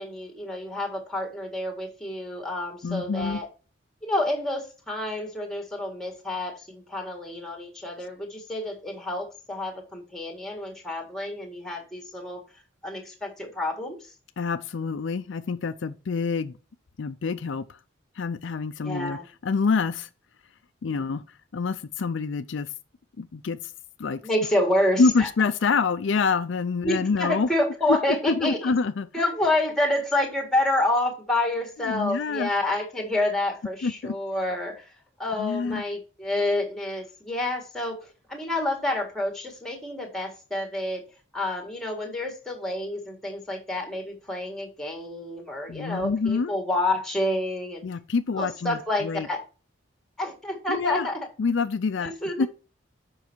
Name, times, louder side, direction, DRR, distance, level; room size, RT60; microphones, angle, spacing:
voice 1, 0.0-3.5 4.0-12.4 12.8-14.0 18.8-19.3 24.2-25.3 26.8-28.6 29.1-34.9 35.2-38.0 38.3-41.0 41.3-47.8 48.4-49.4 50.2-51.2 52.0-52.5, left 1 dB, ahead, 1.8 m, -28 dB
voice 2, 2.8-3.4 14.4-16.5 17.0-17.8 18.2-20.1 20.8-21.2 21.5-22.7 23.2-23.7 24.0-24.2 25.0-27.5 27.9-28.0 28.3-29.1 31.8-32.5 33.8-34.2 35.4-35.8 45.7-46.5 47.8-49.3 50.7-51.1 51.4-52.1 52.4-52.5, left 4 dB, 65° left, 0.4 m, -26 dB
7.1 x 5.4 x 4.5 m
head